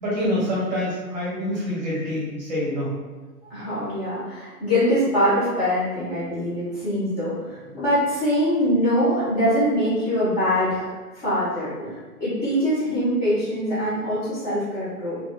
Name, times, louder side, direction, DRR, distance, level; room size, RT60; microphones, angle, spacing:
voice 1, 0.0-2.9, left 1 dB, 25° right, -6 dB, 0.9 m, -26 dB
voice 2, 3.5-15.2, equal, 25° left, -13 dB, 1.3 m, -23 dB
3.3 x 2.8 x 2.2 m, 1.3 s
figure-of-eight pair, 130°, 48 cm